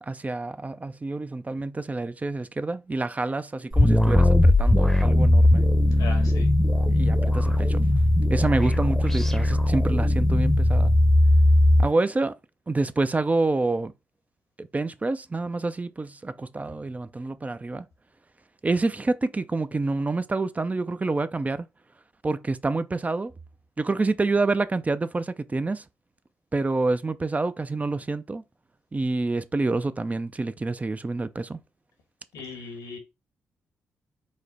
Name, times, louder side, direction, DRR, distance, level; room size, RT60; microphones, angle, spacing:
voice 1, 0.0-5.6 6.9-7.8 8.3-10.9 11.8-12.3 12.7-13.9 14.6-17.9 18.6-21.7 22.2-23.3 23.8-25.8 26.5-28.4 28.9-31.6, right 3 dB, 25° right, 0.4 m, -27 dB
sound 1, 3.7-11.9, left 1 dB, 5° left, 0.8 m, -19 dB
voice 2, 6.0-6.5 32.3-33.0, left 4 dB, 85° left, 1.3 m, -37 dB
4.8 x 2.1 x 4.0 m
supercardioid pair, 50°, 6 cm